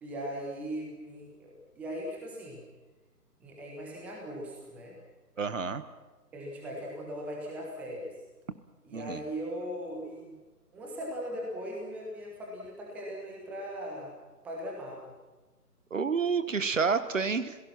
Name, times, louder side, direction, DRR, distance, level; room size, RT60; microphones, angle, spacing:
voice 1, 0.0-2.6 3.4-5.0 6.3-8.2 8.8-10.3 10.7-14.1 14.4-15.0, equal, 5° right, -1 dB, 1.2 m, -39 dB
voice 2, 5.4-5.8 8.9-9.2 15.9-17.6, right 5 dB, 50° right, 12 dB, 1.2 m, -29 dB
29.5 x 17.0 x 5.9 m, 1.2 s
figure-of-eight pair, 150°, 48 cm